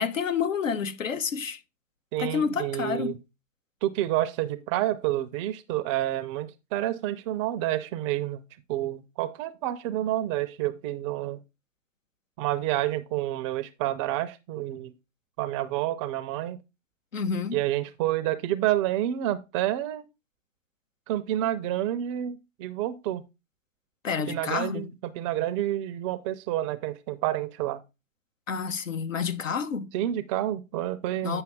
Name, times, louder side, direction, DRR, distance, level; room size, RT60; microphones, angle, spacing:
voice 1, 0.0-1.6 2.2-3.2 17.1-17.6 24.0-24.9 28.5-29.9 31.2-31.4, left 6 dB, 80° left, 1.1 m, -29 dB
voice 2, 2.1-3.1 3.8-8.4 8.7-11.4 12.4-14.9 15.4-16.6 17.5-20.0 21.1-23.2 24.3-27.8 29.9-31.4, right 13 dB, 25° right, 0.5 m, -29 dB
8.9 x 5.6 x 3.5 m
figure-of-eight pair, 115°, 38 cm